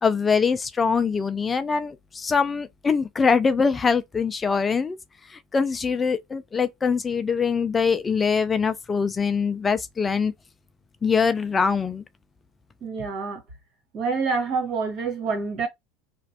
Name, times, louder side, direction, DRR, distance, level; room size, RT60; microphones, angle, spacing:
voice 1, 0.0-5.0 5.3-10.3 11.0-12.0, left 5 dB, 20° left, 0.4 m, -23 dB
voice 2, 12.8-13.4 13.9-15.7, right 4 dB, 45° right, 1.7 m, -27 dB
2.9 x 2.4 x 2.8 m
hypercardioid pair, 100°, 0 cm